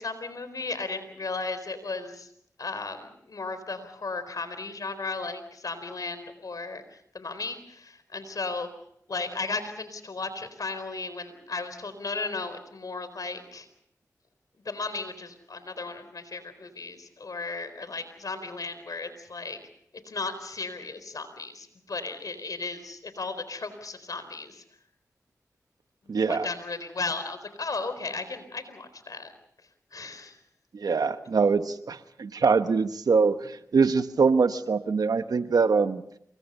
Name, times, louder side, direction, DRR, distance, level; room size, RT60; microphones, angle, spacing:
voice 1, 0.0-2.3 2.6-8.7 9.1-13.7 14.6-19.6 20.1-24.6 26.3-29.3 29.9-30.4, left 3 dB, 70° left, 11 dB, 4.2 m, -35 dB
voice 2, 26.1-26.5 30.7-36.0, right 5 dB, 80° right, 10 dB, 1.2 m, -23 dB
28.0 x 23.5 x 5.5 m, 0.70 s
cardioid pair, 45°, 6 cm